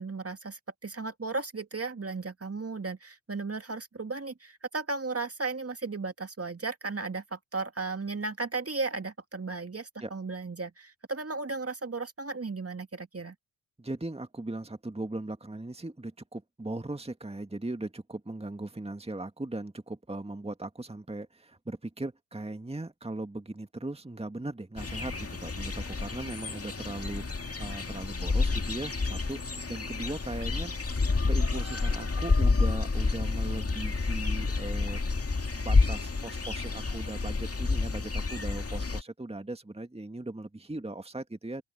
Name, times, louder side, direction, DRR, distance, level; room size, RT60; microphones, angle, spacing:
voice 1, 0.0-13.4, right 3 dB, 30° right, 2.2 m, -35 dB
voice 2, 13.8-29.4 29.7-30.7 31.3-41.6, right 2 dB, 10° right, 2.0 m, -38 dB
sound 1, 24.8-39.0, left 3 dB, 30° left, 2.2 m, -29 dB
sound 2, 29.1-36.7, right 14 dB, 85° right, 7.9 m, -59 dB
open air
hypercardioid pair, 40°, 50 cm